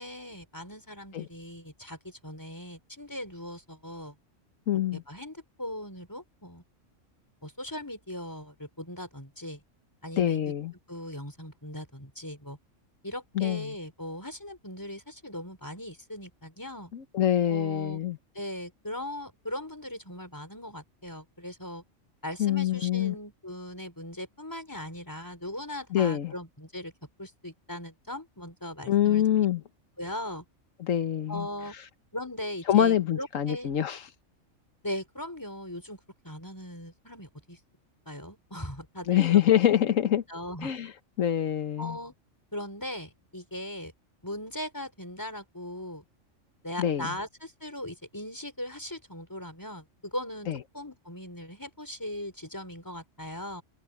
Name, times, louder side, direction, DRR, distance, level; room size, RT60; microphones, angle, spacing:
voice 1, 0.0-4.2 4.9-6.6 7.4-9.6 10.0-10.5 10.9-12.6 13.0-16.9 17.5-18.0 18.3-21.8 22.2-26.9 27.2-29.5 30.0-30.4 31.3-31.8 32.1-33.7 34.8-36.0 36.2-37.6 38.1-39.4 40.3-40.7 41.8-42.1 42.5-43.9 44.2-46.0 46.6-53.6, left 1 dB, 15° left, 5.3 m, -39 dB
voice 2, 4.7-5.0 10.2-10.7 13.4-13.7 16.9-18.2 22.4-23.1 25.9-26.3 28.9-29.6 30.8-31.5 32.7-34.0 39.1-40.2 40.6-40.9 41.2-42.0 46.8-47.1 50.5-50.6, left 10 dB, 90° left, 1.4 m, -25 dB
omnidirectional pair, 1.3 m